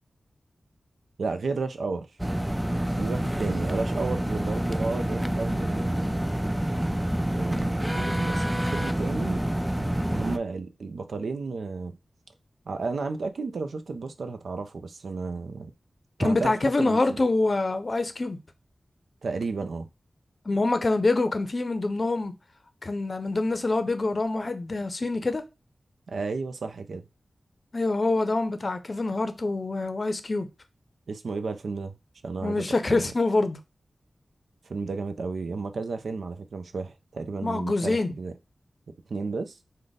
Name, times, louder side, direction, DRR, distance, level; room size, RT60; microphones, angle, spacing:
voice 1, 1.2-2.1 2.9-6.3 7.3-9.5 9.8-12.0 12.7-15.7 16.2-17.2 19.2-19.9 26.1-27.1 31.1-32.0 32.2-33.1 34.6-38.4 39.1-39.6, right 4 dB, 85° right, 0.4 m, -33 dB
sound 1, 2.2-10.4, right 1 dB, 5° right, 0.3 m, -27 dB
voice 2, 16.2-18.4 20.5-22.3 22.8-25.4 27.7-30.5 32.4-33.6 37.4-38.1, left 2 dB, 45° left, 0.5 m, -25 dB
4.9 x 2.1 x 3.9 m
wide cardioid pair, 75°, 0 cm